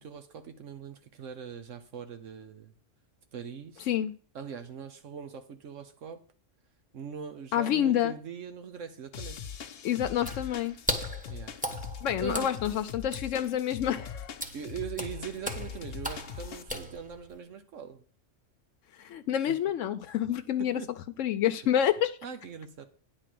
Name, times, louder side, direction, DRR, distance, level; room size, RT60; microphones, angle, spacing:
voice 1, 0.0-2.7 3.3-3.9 4.3-6.2 6.9-9.4 11.3-11.6 12.2-12.5 14.5-18.0 19.5-19.6 20.6-20.9 22.2-22.8, right 7 dB, 80° right, 1.2 m, -41 dB
voice 2, 7.5-8.1 9.8-10.8 12.0-14.4 19.0-20.8 21.2-22.2, left 10 dB, 85° left, 1.0 m, -28 dB
sound 1, 9.1-16.6, left 7 dB, 55° left, 0.8 m, -42 dB
Water / Splash splatter, 10.2-17.4, equal, 5° right, 1.1 m, -38 dB
9.9 x 4.4 x 7.6 m
omnidirectional pair, 1.3 m